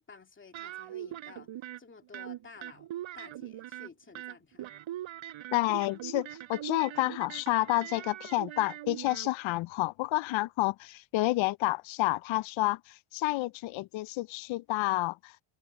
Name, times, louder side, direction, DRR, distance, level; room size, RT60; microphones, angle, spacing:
voice 1, 0.0-1.5 1.8-2.9 3.1-4.7, left 4 dB, 25° left, 2.5 m, -52 dB
sound 1, 0.5-1.8 2.1-9.3, right 13 dB, 80° right, 4.1 m, -41 dB
voice 2, 5.5-15.3, left 19 dB, 75° left, 0.5 m, -30 dB
cardioid pair, 160°, 47 cm